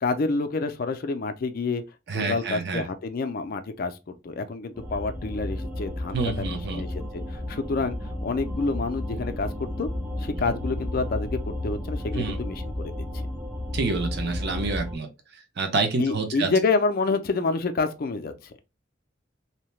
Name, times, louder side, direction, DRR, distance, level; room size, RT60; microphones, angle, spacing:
voice 1, 0.0-1.8 2.1-6.9 7.1-9.9 10.2-12.9 16.0-18.5, left 3 dB, 50° left, 0.4 m, -28 dB
voice 2, 2.1-2.8 6.1-6.8 12.1-12.4 13.7-15.1 15.6-16.5, right 3 dB, 55° right, 0.6 m, -27 dB
sound 1, 4.7-15.0, left 1 dB, 10° right, 0.6 m, -33 dB
2.8 x 2.1 x 3.1 m
head